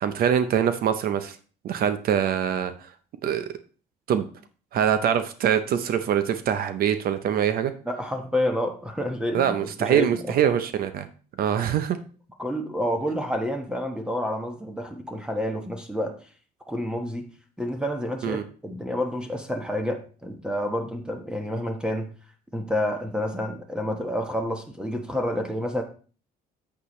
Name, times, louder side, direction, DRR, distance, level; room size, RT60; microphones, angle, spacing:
voice 1, 0.0-1.4 1.6-2.9 3.2-3.5 4.1-4.3 4.7-7.7 9.3-11.1 11.4-12.0 18.2-18.4, right 9 dB, 60° right, 10 dB, 0.8 m, -24 dB
voice 2, 7.8-10.3 12.4-16.1 16.7-17.2 17.6-22.1 22.5-25.8, left 1 dB, 5° right, 4 dB, 1.3 m, -29 dB
8.3 x 8.3 x 3.2 m, 0.40 s
cardioid pair, 110°, 17 cm